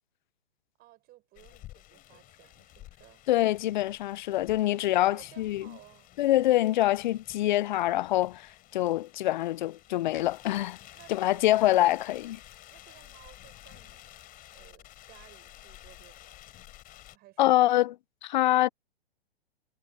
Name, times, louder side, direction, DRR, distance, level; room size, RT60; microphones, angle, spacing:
voice 1, 0.8-3.2 4.5-6.1 10.9-11.5 12.7-14.2 14.5-16.4 17.1-17.6, right 17 dB, 30° right, 6.8 m, -57 dB
sound 1, 1.4-17.2, left 15 dB, 25° left, 3.9 m, -52 dB
voice 2, 3.3-5.7 6.2-10.8 11.1-12.4 17.4-17.9 18.2-18.7, left 15 dB, 50° left, 0.4 m, -25 dB
hypercardioid pair, 130°, 31 cm